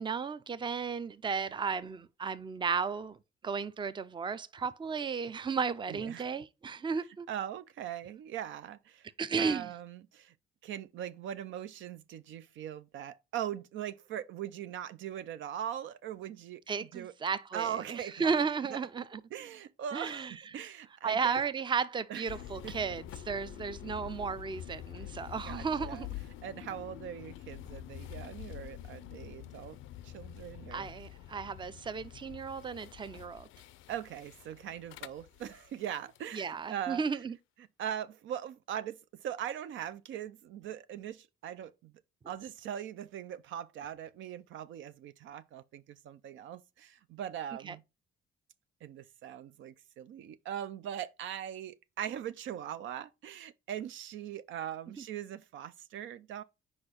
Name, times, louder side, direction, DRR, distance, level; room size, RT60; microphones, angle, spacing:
voice 1, 0.0-3.2 3.4-7.3 9.2-9.7 16.7-19.2 19.9-20.3 21.0-26.1 30.7-33.5 36.3-37.3 47.6-47.8, right 5 dB, 25° right, 0.5 m, -34 dB
voice 2, 5.9-6.3 7.3-9.1 9.4-10.3 10.6-16.6 16.9-17.1 17.5-18.3 18.7-18.8 19.3-21.4 22.1-22.3 22.6-22.7 25.0-25.1 25.5-26.1 26.4-29.8 30.0-30.9 33.9-37.0 37.6-41.9 42.3-47.8 48.8-56.4, right 10 dB, 75° right, 0.5 m, -40 dB
sound 1, 22.3-36.2, left 12 dB, 80° left, 0.4 m, -47 dB
4.8 x 4.3 x 4.9 m
cardioid pair, 90°, 20 cm